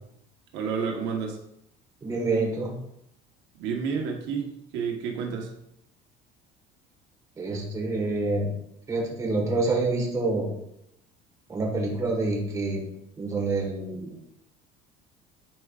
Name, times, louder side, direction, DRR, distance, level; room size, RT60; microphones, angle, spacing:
voice 1, 0.5-1.4 3.6-5.5, right 6 dB, 75° right, 1 dB, 1.3 m, -30 dB
voice 2, 2.0-2.7 7.4-8.5 8.9-10.5 11.5-12.8 13.2-14.3, right 3 dB, 20° right, -1 dB, 1.5 m, -27 dB
10.5 x 4.8 x 2.5 m, 0.78 s
cardioid pair, 175°, 19 cm